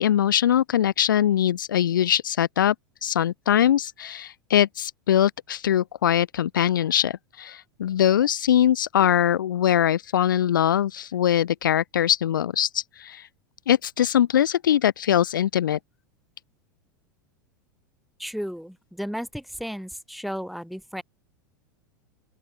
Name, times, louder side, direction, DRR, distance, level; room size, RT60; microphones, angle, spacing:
voice 1, 0.0-2.7 3.0-13.3 13.7-15.8, left 10 dB, 75° left, 0.4 m, -22 dB
voice 2, 18.2-21.0, equal, ahead, 1.8 m, -34 dB
open air
figure-of-eight pair, 90°, 11 cm